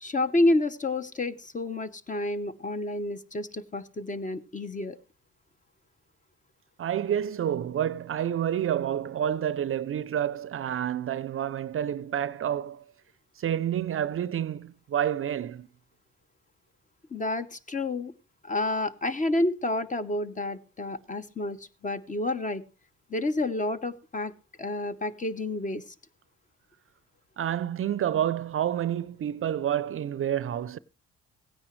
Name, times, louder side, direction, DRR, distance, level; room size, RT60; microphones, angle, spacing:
voice 1, 0.0-5.0 17.1-18.1 18.4-21.6 21.8-22.6 23.1-24.3 24.6-25.8, left 2 dB, 25° left, 0.8 m, -29 dB
voice 2, 6.8-12.8 13.4-15.7 27.4-30.8, right 10 dB, 45° right, 0.5 m, -29 dB
16.5 x 9.6 x 3.1 m
cardioid pair, 90°, 30 cm